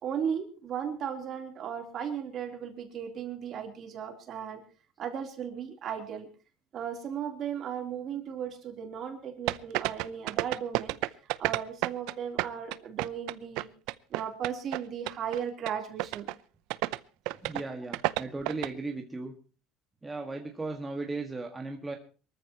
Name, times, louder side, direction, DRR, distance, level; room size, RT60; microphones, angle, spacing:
voice 1, 0.0-4.6 5.0-6.3 6.7-11.0 11.4-13.7 14.1-16.3, right 8 dB, 40° right, 4 dB, 3.5 m, -36 dB
sound 1, 9.5-12.1 12.4-14.8 15.1-15.4 15.7-15.8 16.0-16.3 16.7-17.0 17.3-17.6 17.9-18.7, right 20 dB, 75° right, 0.7 m, -30 dB
voice 2, 17.4-19.3 20.0-22.0, right 3 dB, 10° right, 2 dB, 1.7 m, -36 dB
24.0 x 14.0 x 3.0 m, 0.37 s
cardioid pair, 150°, 0 cm